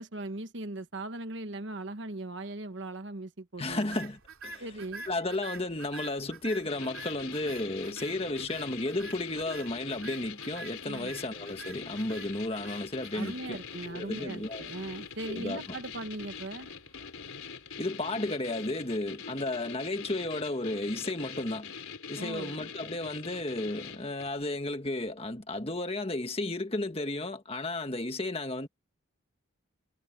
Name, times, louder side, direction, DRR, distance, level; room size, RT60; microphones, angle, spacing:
voice 1, 0.0-4.0 4.6-5.1 10.9-11.1 13.1-16.7 22.2-22.5, right 2 dB, 60° right, 1.3 m, -39 dB
voice 2, 3.6-4.6 5.1-14.6 15.3-15.6 17.8-21.7 22.1-28.7, left 2 dB, 30° left, 1.7 m, -33 dB
sound 1, 3.7-18.0, right 3 dB, 85° right, 3.1 m, -49 dB
sound 2, 6.7-24.4, left 6 dB, 85° left, 3.5 m, -44 dB
head